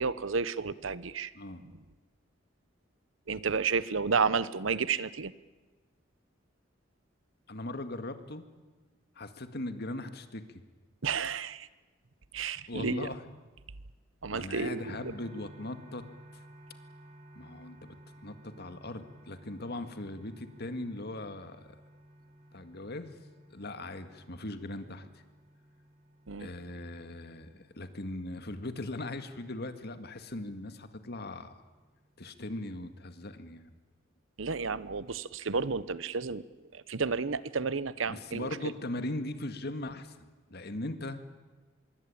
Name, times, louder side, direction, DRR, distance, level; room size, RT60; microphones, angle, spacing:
voice 1, 0.0-1.3 3.3-5.3 11.0-11.7 12.3-13.1 14.2-15.1 26.3-26.5 34.4-36.4 36.7-38.5, right 5 dB, 85° right, 17 dB, 0.9 m, -31 dB
voice 2, 7.5-8.5 9.2-10.6 12.7-13.2 14.3-16.1 16.3-16.4 17.4-17.8 18.2-21.8 22.5-23.2 23.5-25.2 26.4-31.6 32.2-33.7 38.1-40.2 40.5-41.3, left 2 dB, 55° left, 9 dB, 2.0 m, -39 dB
sound 1, 14.8-32.5, right 1 dB, 50° right, 6.2 m, -56 dB
25.5 x 22.5 x 8.8 m, 1.3 s
head